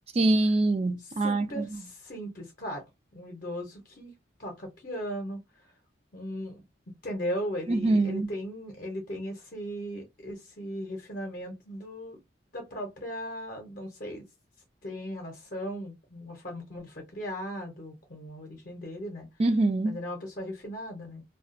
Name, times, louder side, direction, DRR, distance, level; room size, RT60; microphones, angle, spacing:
voice 1, 0.2-1.8 7.7-8.3 19.4-20.0, right 2 dB, 30° right, 0.3 m, -24 dB
voice 2, 1.2-4.1 4.4-5.4 6.1-12.2 12.5-14.2 14.8-19.3 19.8-21.2, equal, 45° left, 0.7 m, -37 dB
2.3 x 2.2 x 2.5 m
head